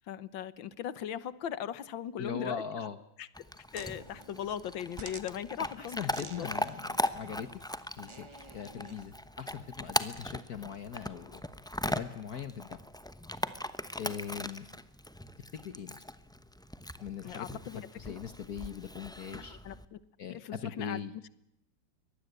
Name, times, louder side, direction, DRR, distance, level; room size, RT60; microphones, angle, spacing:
voice 1, 0.1-2.6 3.2-3.3 3.7-6.5 17.2-17.9 19.5-20.0 20.3-21.0, left 9 dB, 80° left, 17 dB, 1.8 m, -39 dB
voice 2, 2.2-3.0 5.6-7.5 8.0-11.4 11.8-12.8 14.0-14.7 15.6-16.0 17.0-17.6 17.9-19.6 20.2-21.1, left 7 dB, 55° left, 11 dB, 1.5 m, -40 dB
Chewing mastication / Dog, 3.3-19.8, left 1 dB, 5° left, 0.4 m, -39 dB
sound 1, 3.7-9.1, right 3 dB, 20° right, 0.8 m, -51 dB
24.0 x 19.5 x 8.1 m, 0.78 s
omnidirectional pair, 2.1 m